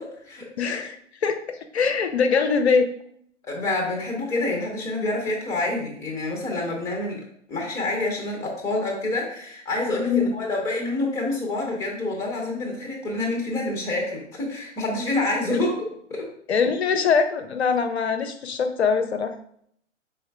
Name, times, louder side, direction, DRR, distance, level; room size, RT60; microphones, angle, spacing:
voice 1, 0.0-0.4 3.4-7.2 7.5-15.7 16.1-16.3, left 2 dB, 10° left, -1 dB, 0.8 m, -27 dB
voice 2, 0.6-2.9 10.1-10.3 15.5-15.6 16.5-19.3, left 5 dB, 60° left, 7 dB, 0.5 m, -23 dB
5.3 x 3.6 x 2.3 m, 0.67 s
figure-of-eight pair, 115°, 37 cm